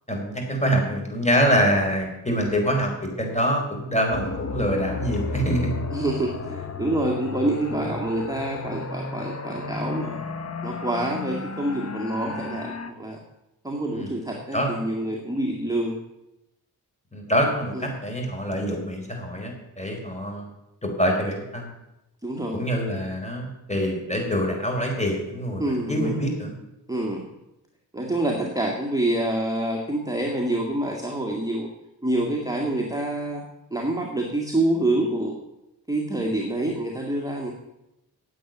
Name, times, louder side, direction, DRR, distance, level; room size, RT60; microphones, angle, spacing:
voice 1, 0.1-5.7 12.3-12.4 13.9-14.1 14.5-14.8 17.1-20.5 20.8-21.7 22.5-26.5, equal, 15° left, 1 dB, 4.7 m, -25 dB
sound 1, 4.1-12.9, left 3 dB, 40° left, 1.2 m, -33 dB
voice 2, 5.9-10.2 10.6-13.2 13.6-16.0 17.7-17.9 22.2-22.6 25.6-26.2 26.9-27.3 27.9-31.7 32.0-33.4 33.7-35.4 35.9-37.5, right 1 dB, 10° right, -1 dB, 2.0 m, -27 dB
9.3 x 8.4 x 9.3 m, 0.91 s
cardioid pair, 60°, 40 cm